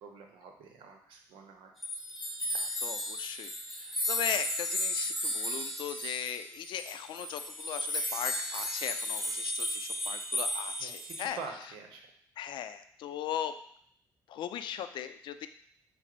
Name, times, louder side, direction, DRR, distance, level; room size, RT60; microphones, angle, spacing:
voice 1, 0.0-1.7 10.8-12.1, right 5 dB, 90° right, 3 dB, 0.8 m, -46 dB
sound 1, 1.8-11.3, left 1 dB, ahead, 1.2 m, -34 dB
voice 2, 2.5-11.4 12.4-13.5 14.3-15.5, left 9 dB, 70° left, 10 dB, 0.4 m, -38 dB
5.9 x 2.0 x 4.4 m, 0.66 s
cardioid pair, 75°, 8 cm